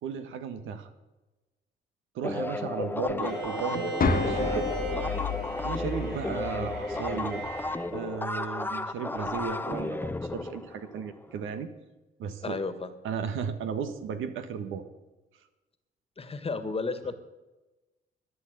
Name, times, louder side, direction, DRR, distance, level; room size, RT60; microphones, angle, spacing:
voice 1, 0.0-0.9 2.1-4.7 5.6-7.5 7.9-11.7 12.2-12.6 13.0-14.8, right 6 dB, 80° right, 9 dB, 1.5 m, -35 dB
sound 1, 2.2-11.4, left 2 dB, 10° left, 0.7 m, -34 dB
voice 2, 2.6-3.3 12.4-12.9 16.2-17.1, left 4 dB, 30° left, 11 dB, 1.6 m, -33 dB
Bowed string instrument, 3.2-7.9, right 3 dB, 55° right, 5.2 m, -37 dB
sound 2, 4.0-8.0, left 4 dB, 45° left, 1.3 m, -32 dB
13.0 x 9.9 x 8.1 m, 1.1 s
cardioid pair, 90°, 20 cm